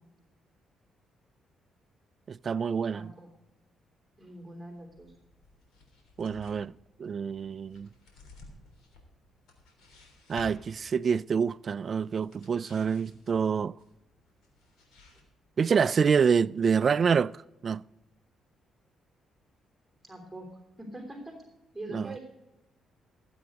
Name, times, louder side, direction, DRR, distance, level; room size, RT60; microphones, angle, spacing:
voice 1, 2.3-3.1 6.2-6.7 7.0-7.9 10.3-13.7 15.6-17.8 21.9-22.1, right 6 dB, 45° right, 0.3 m, -27 dB
voice 2, 2.9-3.3 4.2-5.1 20.0-21.3 21.7-22.2, right 1 dB, 5° right, 3.2 m, -43 dB
sound 1, 4.8-15.2, left 2 dB, 90° left, 3.4 m, -55 dB
15.5 x 8.0 x 5.1 m
cardioid pair, 90°, 0 cm